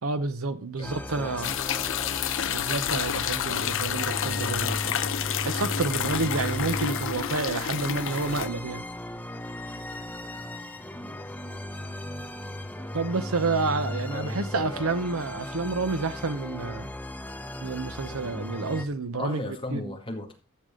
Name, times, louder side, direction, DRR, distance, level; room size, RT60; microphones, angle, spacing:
voice 1, 0.0-1.5 2.5-4.9 5.4-8.9 12.9-16.9 17.6-19.4 19.7-19.9, right 3 dB, 75° right, 0.8 m, -29 dB
voice 2, 0.8-2.2 10.9-11.2 14.1-15.0 19.1-20.3, left 2 dB, 25° left, 2.1 m, -38 dB
sound 1, 0.8-18.9, left 1 dB, 10° left, 0.8 m, -36 dB
sound 2, 1.4-8.5, left 9 dB, 65° left, 0.6 m, -29 dB
14.0 x 6.7 x 3.8 m
head